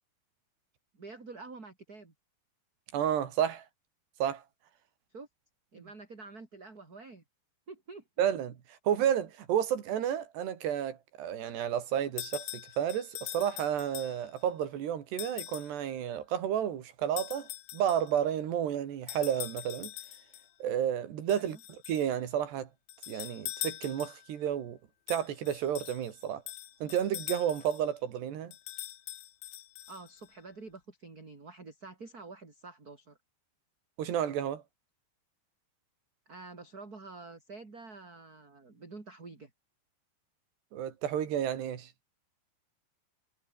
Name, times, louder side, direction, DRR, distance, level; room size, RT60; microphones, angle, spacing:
voice 1, 0.9-2.1 5.1-5.3 5.7-7.2 7.7-8.0 21.4-21.6 29.9-33.2 36.3-39.5, right 3 dB, 20° right, 4.0 m, -48 dB
voice 2, 2.9-3.7 4.2-4.4 5.8-5.9 8.2-19.9 20.6-22.7 23.1-24.8 25.1-26.4 26.8-28.5 34.0-34.6 40.7-41.9, right 9 dB, 65° right, 4.5 m, -31 dB
sound 1, 12.2-14.4 15.2-15.8 17.2-18.2 19.1-20.5 21.3-22.1 22.9-24.3 25.1-27.9 28.5-30.3, left 15 dB, 80° left, 3.5 m, -43 dB
omnidirectional pair, 5.2 m